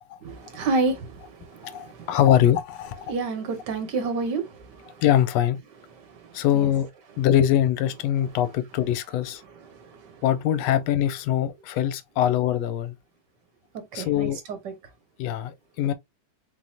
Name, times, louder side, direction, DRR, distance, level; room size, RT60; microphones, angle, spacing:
voice 1, 0.2-2.1 3.1-4.9 6.1-6.7 9.7-10.1 13.9-14.7, right 3 dB, 55° right, 1.3 m, -30 dB
voice 2, 1.6-3.0 5.0-5.6 6.3-6.9 7.2-9.4 10.2-12.9 13.9-14.4 15.2-15.9, left 11 dB, 80° left, 1.6 m, -23 dB
4.6 x 3.9 x 2.7 m
omnidirectional pair, 3.4 m